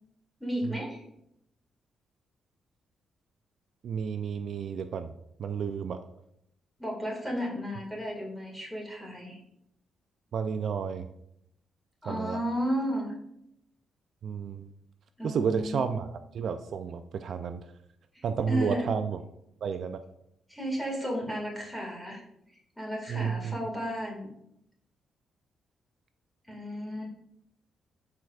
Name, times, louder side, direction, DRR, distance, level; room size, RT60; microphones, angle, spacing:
voice 1, 0.4-1.0 6.8-9.4 12.0-13.1 15.2-15.9 18.1-18.9 20.5-22.2 22.8-24.3 26.5-27.1, equal, 5° left, -2 dB, 2.0 m, -33 dB
voice 2, 3.8-6.0 10.3-11.1 12.1-12.4 14.2-14.7 15.2-17.7 18.2-19.2 19.6-20.0 23.1-23.6, right 6 dB, 60° right, 9 dB, 0.4 m, -31 dB
12.0 x 4.7 x 2.4 m, 0.77 s
cardioid pair, 140°, 0 cm